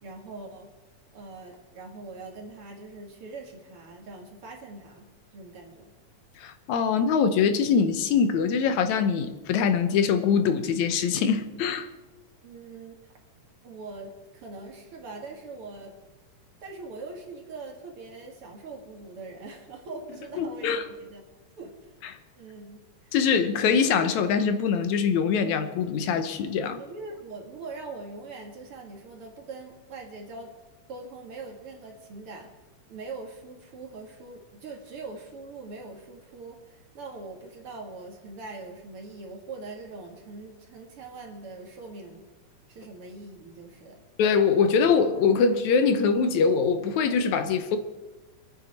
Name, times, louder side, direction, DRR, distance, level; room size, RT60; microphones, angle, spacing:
voice 1, 0.0-0.7 1.1-5.9 12.4-13.1 13.6-16.0 16.6-21.2 21.6-21.9 22.4-23.1 26.8-30.5 30.9-32.5 32.9-42.2 42.7-44.0, right 3 dB, 50° right, 0 dB, 2.7 m, -42 dB
voice 2, 6.4-11.9 20.4-20.8 23.1-26.8 44.2-47.8, left 6 dB, 80° left, 9 dB, 2.3 m, -23 dB
26.0 x 9.1 x 4.2 m, 1.2 s
omnidirectional pair, 3.3 m